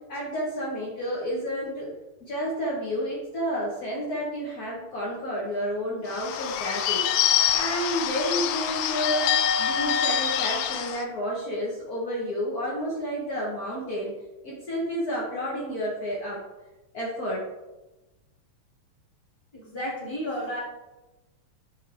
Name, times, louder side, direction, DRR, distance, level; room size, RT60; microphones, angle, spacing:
voice 1, 0.1-1.9 2.2-7.0 7.5-9.3 9.6-14.1 14.4-16.4 16.9-17.5, equal, 65° left, -5 dB, 0.9 m, -30 dB
Bird / Bell, 6.1-11.0, left 9 dB, 80° left, 1.5 m, -25 dB
voice 2, 19.5-20.6, equal, 10° left, -6 dB, 1.7 m, -32 dB
9.5 x 4.7 x 3.4 m, 1.1 s
omnidirectional pair, 3.5 m